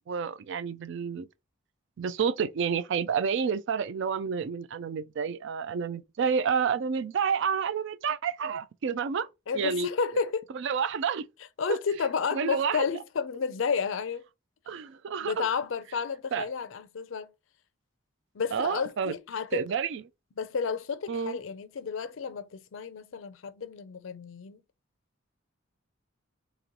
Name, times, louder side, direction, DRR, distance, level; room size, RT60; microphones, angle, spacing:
voice 1, 0.1-1.3 2.0-9.3 9.5-9.9 10.5-11.2 11.7-11.8 12.3-12.9 14.7-15.5 16.3-16.5 18.5-19.1 19.5-20.0 21.1-21.4, right 6 dB, 60° right, 0.4 m, -29 dB
voice 2, 9.5-10.5 11.6-14.2 15.2-17.3 18.3-19.7 20.4-24.6, left 5 dB, 70° left, 0.5 m, -31 dB
3.0 x 2.9 x 3.8 m
head